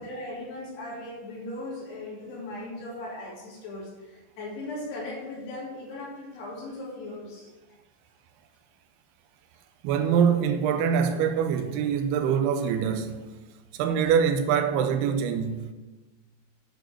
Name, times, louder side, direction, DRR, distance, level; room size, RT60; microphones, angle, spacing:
voice 1, 0.0-7.5, left 2 dB, 90° left, 5.0 m, -38 dB
voice 2, 9.8-13.2 13.8-15.7, right 7 dB, 90° right, 2.7 m, -24 dB
9.5 x 6.6 x 6.4 m
omnidirectional pair, 4.6 m